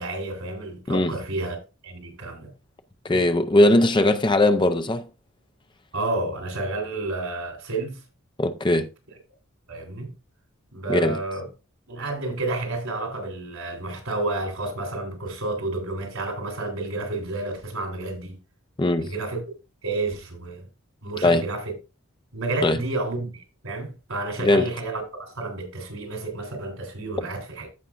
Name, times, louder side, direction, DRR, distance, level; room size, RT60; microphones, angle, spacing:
voice 1, 0.0-1.6 1.8-2.5 3.1-3.2 5.9-8.0 9.7-10.1 10.7-11.4 11.9-18.4 19.0-19.4 19.8-20.7 21.0-21.7 22.3-27.7, right 2 dB, 75° right, 3.4 m, -30 dB
voice 2, 3.0-5.1 8.4-8.9 10.9-11.2 18.8-19.1 21.2-21.4 22.6-22.8 24.4-24.7, left 1 dB, 20° left, 0.6 m, -19 dB
14.5 x 5.5 x 2.5 m
head